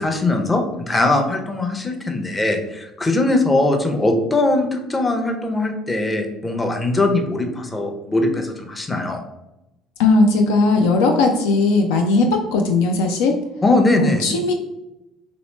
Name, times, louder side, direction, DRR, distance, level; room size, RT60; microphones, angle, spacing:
voice 1, 0.0-9.2 13.6-14.3, left 2 dB, 20° left, 4 dB, 0.7 m, -20 dB
voice 2, 10.0-13.3 13.9-14.5, left 3 dB, 70° left, 3 dB, 0.3 m, -17 dB
3.0 x 3.0 x 3.0 m, 0.93 s
figure-of-eight pair, 55°, 0 cm